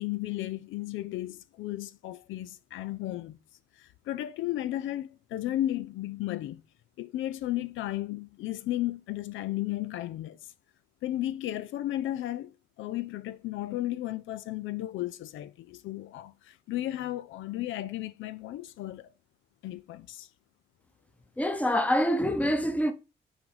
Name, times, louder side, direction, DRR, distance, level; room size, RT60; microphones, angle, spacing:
voice 1, 0.0-3.4 3.8-6.6 7.0-10.5 11.0-19.1 19.6-20.3, left 14 dB, 80° left, 0.4 m, -34 dB
voice 2, 21.4-22.9, equal, 5° left, 0.9 m, -25 dB
5.9 x 4.0 x 4.8 m
cardioid pair, 90°, 20 cm